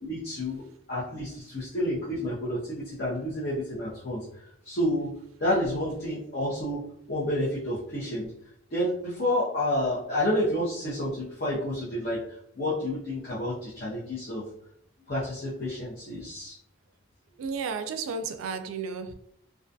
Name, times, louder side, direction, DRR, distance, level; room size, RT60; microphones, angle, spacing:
voice 1, 0.0-8.3 8.7-14.5 15.1-16.6, left 1 dB, 50° left, 0.7 m, -30 dB
voice 2, 17.4-19.1, right 5 dB, 85° right, 0.3 m, -33 dB
2.4 x 2.2 x 2.6 m
head